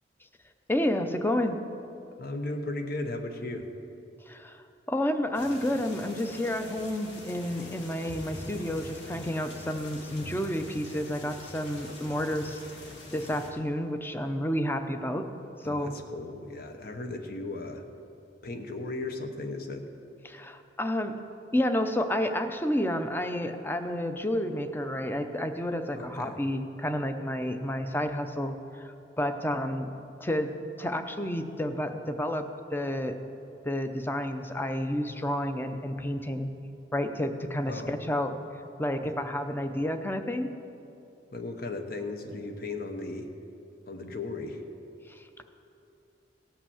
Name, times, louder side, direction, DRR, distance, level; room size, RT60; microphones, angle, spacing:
voice 1, 0.7-1.6 4.3-4.6 4.9-12.6 13.1-15.3 15.6-16.0 20.2-21.1 21.5-29.9 30.2-30.5 30.8-33.2 33.6-36.5 36.9-38.4 38.8-40.5 45.1-45.2, left 1 dB, 10° left, 8 dB, 0.6 m, -30 dB
voice 2, 2.2-3.7 15.6-17.8 18.4-19.9 25.9-26.3 37.7-38.0 41.3-43.3 43.9-44.6, left 2 dB, 55° left, 5 dB, 1.1 m, -36 dB
sound 1, 5.3-13.5, left 1 dB, 80° left, 1.8 m, -44 dB
17.0 x 5.8 x 7.1 m, 2.7 s
head